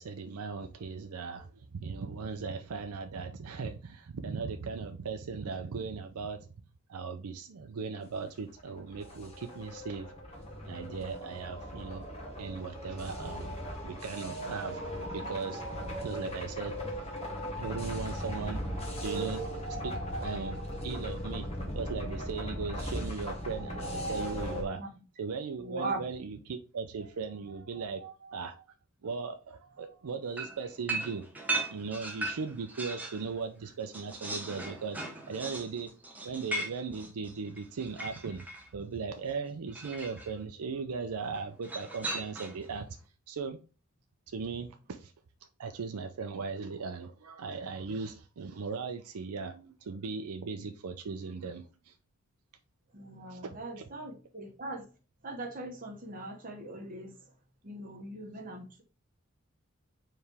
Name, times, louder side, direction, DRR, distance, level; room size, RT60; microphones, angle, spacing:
voice 1, 0.0-6.5 6.9-10.1 10.7-12.0 12.4-14.8 15.1-15.6 16.0-16.7 17.6-18.6 19.0-19.4 19.8-19.9 20.2-21.5 21.8-24.8 25.2-28.7 29.0-31.2 31.7-35.0 35.3-35.9 36.2-38.5 38.7-42.9 43.3-43.6 44.3-45.1 45.6-51.9 53.3-53.8, right 5 dB, 90° right, 0.5 m, -38 dB
sound 1, 8.5-24.6, equal, 30° left, 1.1 m, -38 dB
voice 2, 25.6-26.0 52.9-54.8 55.2-57.1 57.6-58.8, right 2 dB, 40° right, 1.1 m, -40 dB
sound 2, 30.4-33.3 33.6-38.7 39.7-40.3 41.6-42.7, right 2 dB, 5° right, 0.7 m, -38 dB
4.6 x 3.3 x 3.4 m
head